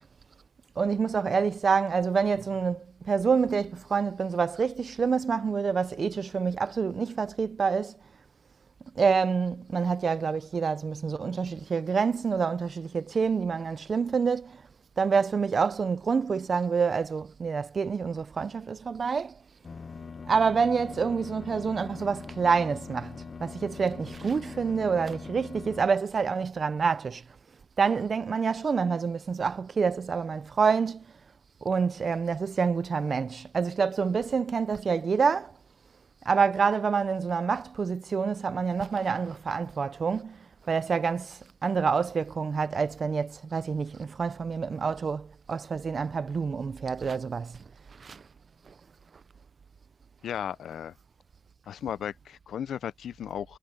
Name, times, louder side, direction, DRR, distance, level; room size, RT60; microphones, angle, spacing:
voice 1, 0.8-8.0 9.0-14.6 15.0-19.4 20.3-23.2 23.4-27.2 27.8-31.1 31.6-35.5 36.3-40.4 40.7-47.6 48.0-48.2 48.7-48.8, right 5 dB, 45° right, 0.5 m, -27 dB
sound 1, 19.6-25.9, left 5 dB, 40° left, 1.2 m, -42 dB
voice 2, 50.2-50.9 51.7-53.6, left 9 dB, 90° left, 0.5 m, -35 dB
wide cardioid pair, 120°, 0 cm